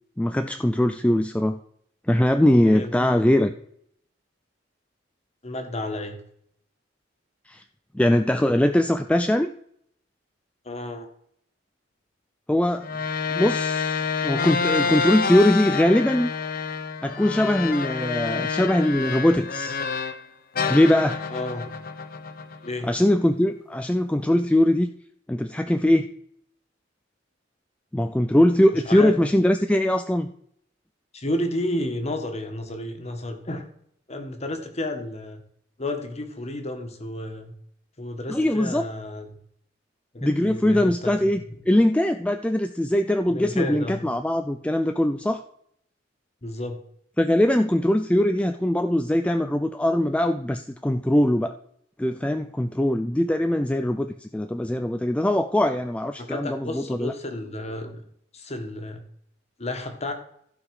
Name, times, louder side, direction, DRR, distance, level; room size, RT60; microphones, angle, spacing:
voice 1, 0.2-1.6 2.1-3.5 7.5-7.6 7.9-9.5 12.5-12.9 13.3-16.3 17.0-19.8 20.7-21.2 22.8-24.9 25.3-26.1 27.9-30.3 38.3-38.8 40.2-41.4 41.7-45.4 47.2-51.6 52.0-57.1, left 1 dB, 5° left, 7 dB, 0.4 m, -21 dB
voice 2, 2.6-3.2 5.4-6.2 10.7-11.1 21.3-21.7 22.6-22.9 28.3-28.4 28.7-29.1 31.1-33.6 34.1-35.4 35.8-37.5 38.0-39.3 40.1-41.4 43.3-44.0 46.4-46.8 56.2-58.0 58.3-59.0 59.6-60.1, left 1 dB, 35° left, 5 dB, 1.6 m, -31 dB
sound 1, 12.8-20.2 20.6-22.9, left 5 dB, 50° left, 0.8 m, -28 dB
15.0 x 5.3 x 4.8 m, 0.67 s
head